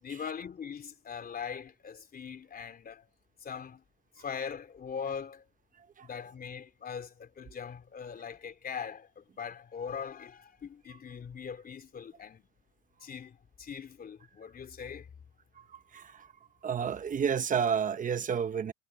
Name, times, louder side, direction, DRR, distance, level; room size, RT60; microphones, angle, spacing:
voice 1, 0.0-3.0 3.4-3.8 4.2-5.4 6.0-12.4 13.0-15.1, left 7 dB, 20° left, 3.3 m, -41 dB
voice 2, 15.6-16.3 16.6-18.7, right 7 dB, 20° right, 1.0 m, -31 dB
supercardioid pair, 140°, 40 cm